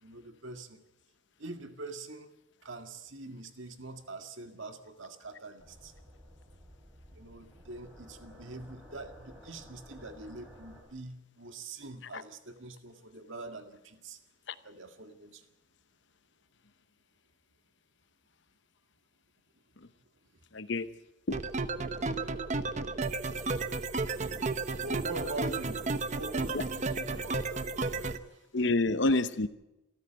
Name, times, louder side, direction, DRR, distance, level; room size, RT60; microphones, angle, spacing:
voice 1, 0.0-0.8 1.4-2.4 2.6-5.9 7.1-14.2 14.6-15.5 24.8-25.8 26.1-27.9 28.3-28.4, right 2 dB, 70° right, 6 dB, 1.9 m, -44 dB
sound 1, 5.6-10.8, equal, 5° right, 6.5 m, -53 dB
voice 2, 20.5-20.9 21.3-21.4 26.5-26.6 28.5-29.5, left 2 dB, 55° left, 13 dB, 0.9 m, -27 dB
sound 2, 21.3-28.2, right 3 dB, 35° right, 0.9 m, -33 dB
26.5 x 14.0 x 7.9 m, 0.96 s
head